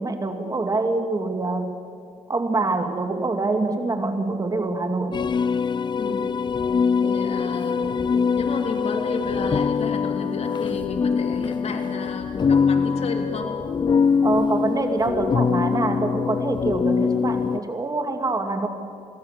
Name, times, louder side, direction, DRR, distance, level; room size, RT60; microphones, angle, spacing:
voice 1, 0.0-1.7 2.3-5.3 14.2-18.7, right 3 dB, 30° right, 6 dB, 2.4 m, -25 dB
sound 1, 5.1-17.6, left 6 dB, 35° left, 0.6 m, -23 dB
voice 2, 6.0-6.3 7.0-7.8 8.4-13.5, left 4 dB, 55° left, 4 dB, 3.2 m, -31 dB
sound 2, 7.0-10.7, right 2 dB, 55° right, 6.0 m, -42 dB
26.5 x 19.5 x 7.6 m, 2.5 s
cardioid pair, 80°, 13 cm